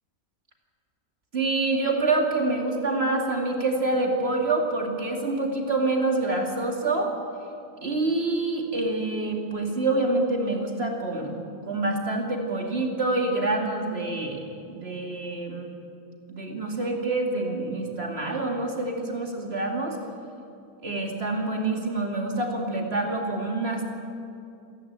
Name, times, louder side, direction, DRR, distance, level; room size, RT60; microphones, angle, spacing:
voice 1, 1.3-7.1 7.8-11.4 11.7-14.4 14.7-15.7 16.3-20.0 20.8-23.8, right 2 dB, 40° right, 1 dB, 2.8 m, -26 dB
27.5 x 11.5 x 8.9 m, 2.7 s
omnidirectional pair, 1.6 m